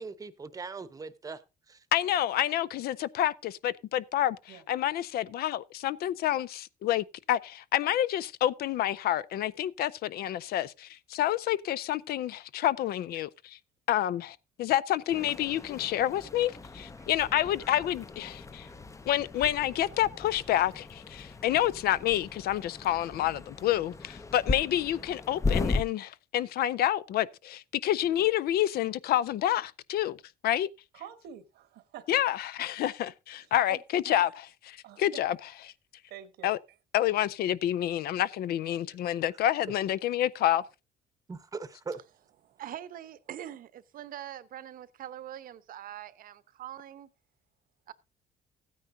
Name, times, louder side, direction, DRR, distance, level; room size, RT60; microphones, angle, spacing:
voice 1, 0.0-1.4 1.7-1.8 41.3-42.0, right 4 dB, 20° right, 0.9 m, -40 dB
voice 2, 1.9-13.6 13.9-18.7 19.1-30.2 30.4-30.7 32.1-35.4 36.4-36.6 36.9-40.6, left 12 dB, 65° left, 0.5 m, -28 dB
sound 1, 15.1-25.8, left 3 dB, 20° left, 0.6 m, -37 dB
voice 3, 30.9-32.2 33.7-34.2 34.8-35.2 36.1-36.5, right 10 dB, 75° right, 1.2 m, -47 dB
voice 4, 42.4-47.1 47.9-48.0, right 11 dB, 55° right, 0.9 m, -43 dB
15.5 x 9.4 x 2.6 m
cardioid pair, 110°, 17 cm